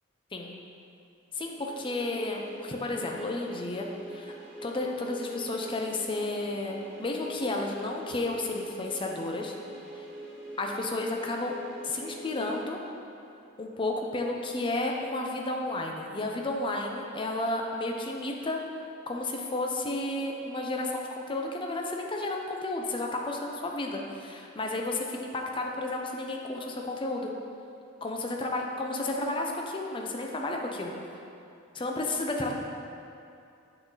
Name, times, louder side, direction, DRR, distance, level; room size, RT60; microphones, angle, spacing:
voice 1, 1.3-4.3 4.6-9.5 9.9-10.1 10.6-11.6 11.8-12.8 13.6-18.6 19.1-27.3 28.0-30.9 31.7-32.5, left 2 dB, 25° left, 1 dB, 0.5 m, -32 dB
sound 1, 1.5-13.4, right 1 dB, 5° left, 1.1 m, -44 dB
8.4 x 3.9 x 3.9 m, 2.6 s
head